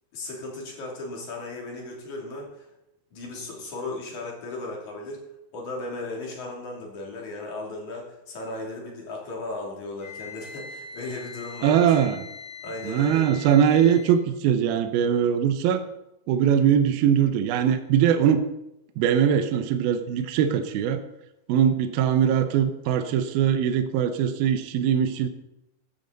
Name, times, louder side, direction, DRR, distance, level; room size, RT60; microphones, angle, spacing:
voice 1, 0.1-2.7 3.1-5.2 5.5-12.0 12.6-13.3, left 2 dB, 50° left, -2 dB, 3.9 m, -36 dB
Wind instrument woodwind instrument, 10.0-14.2, left 5 dB, 35° left, 6.2 m, -42 dB
voice 2, 11.6-12.2 12.8-15.8 16.3-18.4 19.0-21.0 21.5-25.3, right 9 dB, 75° right, 8 dB, 2.5 m, -21 dB
14.5 x 11.0 x 3.9 m, 0.88 s
omnidirectional pair, 4.7 m